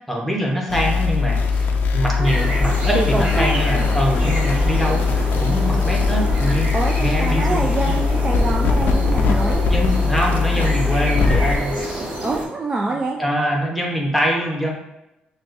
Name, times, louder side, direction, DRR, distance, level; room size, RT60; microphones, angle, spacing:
voice 1, 0.1-1.7 1.9-6.7 7.0-8.0 9.7-12.1 12.9-14.7, equal, ahead, -1 dB, 0.9 m, -24 dB
sound 1, 0.7-11.6, left 4 dB, 70° left, 0.4 m, -20 dB
sound 2, 2.2-12.5, right 1 dB, 50° right, 1.2 m, -28 dB
voice 2, 2.9-3.6 6.7-9.6 12.2-13.2, right 3 dB, 25° right, 0 dB, 0.3 m, -25 dB
6.1 x 2.3 x 2.5 m, 0.92 s
cardioid pair, 120°, 3 cm